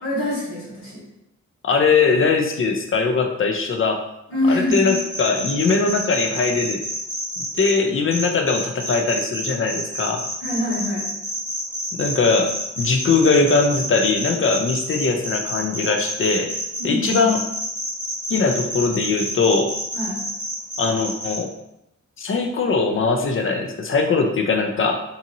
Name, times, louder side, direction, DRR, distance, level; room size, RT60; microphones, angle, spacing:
voice 1, 0.0-1.0 4.3-4.9 10.4-11.1 16.8-17.3 19.9-20.2, left 1 dB, 60° left, -8 dB, 1.3 m, -24 dB
voice 2, 1.6-4.0 4.5-6.8 7.5-10.2 11.9-16.5 16.8-17.4 18.3-19.7 20.8-21.5 22.2-25.0, left 4 dB, 45° left, 4 dB, 0.4 m, -20 dB
sound 1, 4.7-7.7 8.1-21.4, equal, 15° right, 1.2 m, -28 dB
2.7 x 2.6 x 2.6 m, 0.84 s
wide cardioid pair, 90°, 30 cm